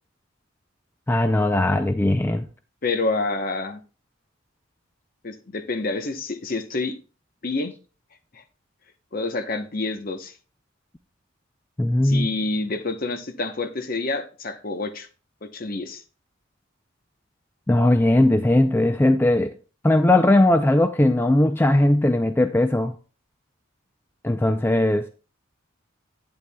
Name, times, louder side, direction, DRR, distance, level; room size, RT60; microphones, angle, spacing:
voice 1, 1.1-2.5 11.8-12.3 17.7-19.5 19.8-22.9 24.2-25.1, left 1 dB, 10° left, 0.3 m, -19 dB
voice 2, 2.8-3.8 5.2-7.0 7.4-7.7 8.3-8.4 9.1-10.4 12.0-15.1 15.4-16.0, left 3 dB, 45° left, 0.8 m, -28 dB
11.0 x 8.6 x 2.2 m
head